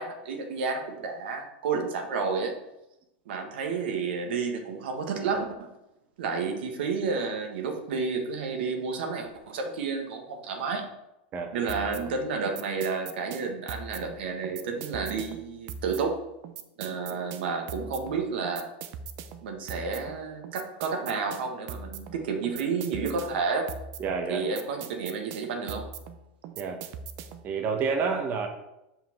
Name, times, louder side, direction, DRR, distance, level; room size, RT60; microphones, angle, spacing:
voice 1, 0.0-2.6 3.3-5.7 6.2-10.9 11.5-16.2 16.8-18.7 19.4-23.7 24.3-25.9, right 5 dB, 75° right, 3 dB, 1.5 m, -31 dB
sound 1, 11.7-27.5, right 6 dB, 50° right, 0.7 m, -42 dB
voice 2, 16.9-17.2 24.0-24.4 26.6-26.8 27.4-28.5, right 5 dB, 35° right, 3 dB, 1.1 m, -29 dB
5.6 x 5.3 x 5.9 m, 0.90 s
hypercardioid pair, 115°, 6 cm